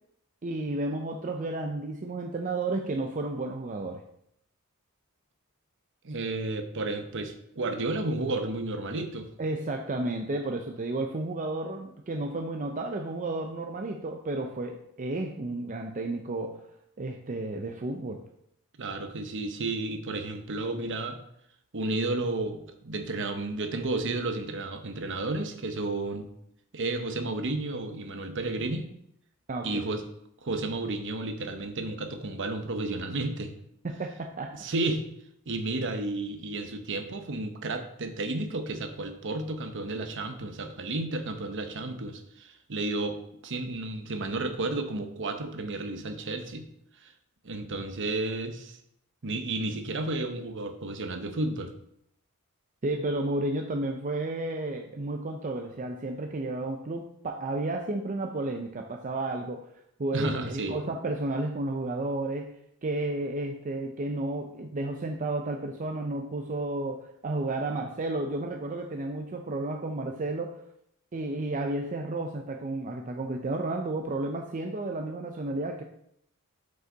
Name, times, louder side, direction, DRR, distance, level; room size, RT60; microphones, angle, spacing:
voice 1, 0.4-4.0 9.4-16.7 17.0-18.2 29.5-29.9 33.8-34.6 52.8-59.7 60.0-62.5 62.8-70.6 71.1-75.8, right 2 dB, 35° right, 3 dB, 0.5 m, -32 dB
voice 2, 6.0-9.3 18.8-21.2 21.7-26.3 26.7-28.9 29.6-30.0 30.4-33.5 34.5-35.1 35.5-43.2 43.4-46.7 47.0-47.1 47.4-48.8 49.2-51.7 60.1-60.8, right 2 dB, 55° right, 7 dB, 0.9 m, -32 dB
7.9 x 5.4 x 3.9 m, 0.74 s
head